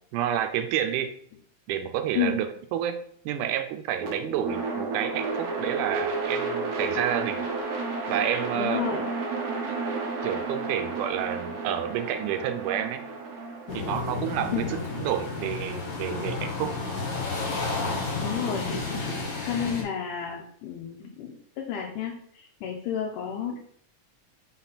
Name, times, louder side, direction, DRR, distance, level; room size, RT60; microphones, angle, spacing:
voice 1, 0.1-1.1 1.7-2.5 2.7-7.4 8.1-8.8 10.2-13.0 13.7-16.8, right 10 dB, 85° right, 8 dB, 2.1 m, -29 dB
sound 1, 4.0-16.1, right 3 dB, 65° right, 1.9 m, -32 dB
voice 2, 8.5-9.0 14.5-14.7 18.2-18.7 19.4-23.6, left 8 dB, 85° left, -1 dB, 2.3 m, -31 dB
Storm Rain from Porch perspective, 13.7-19.8, left 3 dB, 60° left, 0.9 m, -31 dB
6.0 x 4.0 x 4.1 m, 0.63 s
omnidirectional pair, 3.6 m